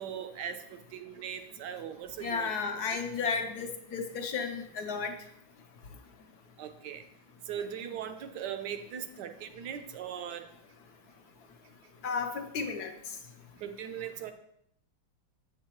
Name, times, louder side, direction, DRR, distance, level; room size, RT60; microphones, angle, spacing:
voice 1, 0.0-2.5 6.6-7.0 7.5-10.5 13.6-14.3, right 9 dB, 70° right, 9 dB, 1.2 m, -39 dB
voice 2, 2.2-5.1 12.0-13.2, left 5 dB, 65° left, 5 dB, 1.1 m, -33 dB
7.8 x 7.4 x 3.0 m, 0.73 s
omnidirectional pair, 2.1 m